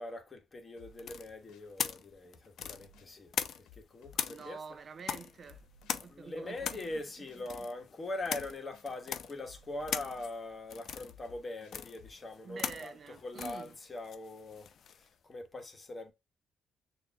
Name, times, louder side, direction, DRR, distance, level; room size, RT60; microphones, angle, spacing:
voice 1, 0.0-3.3 3.6-4.6 6.1-14.7 15.0-16.1, left 2 dB, 30° left, 1.2 m, -42 dB
sound 1, 0.8-1.7 2.6-3.1 3.7-4.6 5.5-5.9 6.5-7.5 8.4-8.9 9.4-10.4 11.1-12.2, left 5 dB, 85° left, 0.8 m, -58 dB
sound 2, 1.0-3.8 4.1-15.1, left 8 dB, 60° left, 0.5 m, -40 dB
voice 2, 4.3-5.6 5.9-7.3 7.6-7.7 12.4-13.7, right 5 dB, 50° right, 0.4 m, -47 dB
6.4 x 2.5 x 2.3 m
cardioid pair, 90°, 0 cm